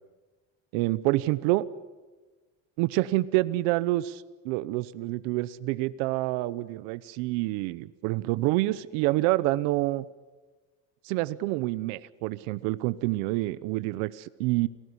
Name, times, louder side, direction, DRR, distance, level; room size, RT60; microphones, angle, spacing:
voice 1, 0.7-1.6 2.8-10.1 11.0-14.7, right 18 dB, 85° right, 16 dB, 0.9 m, -27 dB
29.0 x 19.0 x 9.9 m, 1.3 s
supercardioid pair, 105°, 33 cm